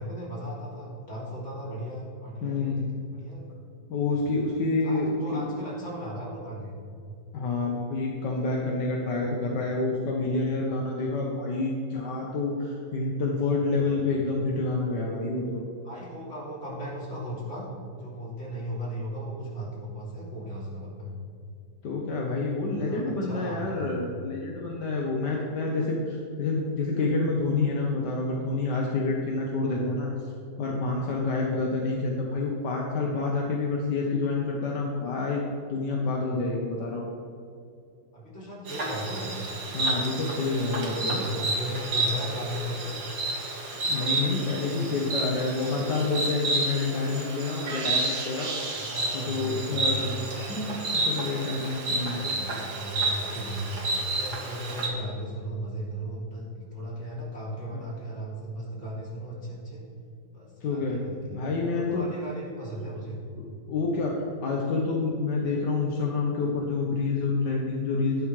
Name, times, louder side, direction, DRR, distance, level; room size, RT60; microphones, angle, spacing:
voice 1, 0.0-3.5 4.8-6.8 13.5-14.0 15.8-21.1 22.7-23.9 36.3-36.5 38.1-39.4 40.7-43.0 44.4-45.0 48.7-50.1 52.1-59.8 60.3-61.4 61.7-63.2, equal, 40° left, -5 dB, 3.3 m, -37 dB
voice 2, 2.4-2.9 3.9-5.5 7.3-15.6 21.8-30.1 30.6-35.4 35.7-37.0 39.7-41.2 43.7-48.6 49.1-52.4 57.7-57.8 60.6-61.0 61.3-62.1 63.4-68.3, left 3 dB, 75° left, -1 dB, 1.8 m, -28 dB
Insect, 38.7-54.9, right 2 dB, 70° right, 2.1 m, -30 dB
14.5 x 11.0 x 3.3 m, 2.5 s
omnidirectional pair, 1.9 m